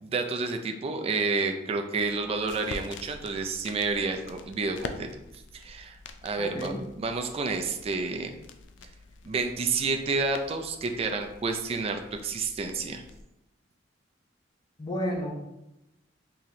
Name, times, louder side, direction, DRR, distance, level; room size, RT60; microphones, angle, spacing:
voice 1, 0.0-5.1 5.5-8.4 9.2-13.0, right 4 dB, 30° right, 5 dB, 0.3 m, -30 dB
sound 1, 2.0-13.2, left 3 dB, 75° left, 0.4 m, -46 dB
voice 2, 6.4-6.8 14.8-15.4, equal, 25° left, 1 dB, 0.6 m, -31 dB
4.1 x 2.9 x 2.6 m, 0.91 s
head